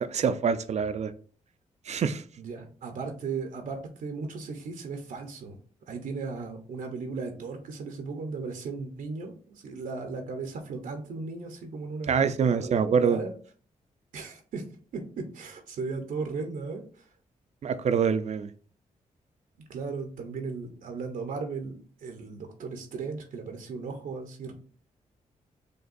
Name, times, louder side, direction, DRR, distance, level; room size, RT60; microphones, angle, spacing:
voice 1, 0.1-1.1 1.9-2.2 12.1-13.2 17.6-18.5, right 6 dB, 55° right, 12 dB, 0.4 m, -25 dB
voice 2, 2.4-5.6 5.9-13.3 14.1-14.7 14.9-17.1 19.7-24.5, right 4 dB, 80° right, 5 dB, 0.8 m, -36 dB
6.4 x 2.3 x 2.6 m, 0.43 s
cardioid pair, 70°, 14 cm